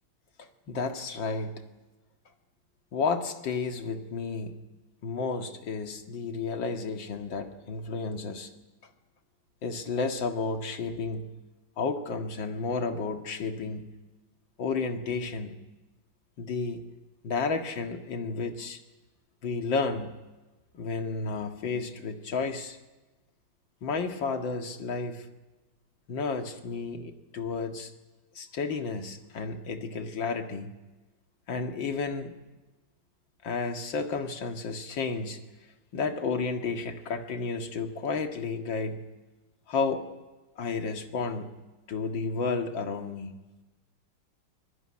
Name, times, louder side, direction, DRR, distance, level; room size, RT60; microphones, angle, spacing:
voice 1, 0.4-1.6 2.9-4.6 5.0-8.5 9.6-11.3 11.8-14.0 14.6-15.6 16.4-16.8 17.2-18.8 19.4-20.2 20.7-22.8 23.8-25.3 26.1-27.9 28.3-30.7 31.5-32.4 33.4-35.4 35.9-39.0 39.7-40.1 40.6-41.6 41.9-43.3, left 4 dB, 65° left, 5 dB, 2.6 m, -32 dB
24.5 x 20.5 x 9.9 m, 1.1 s
omnidirectional pair, 2.3 m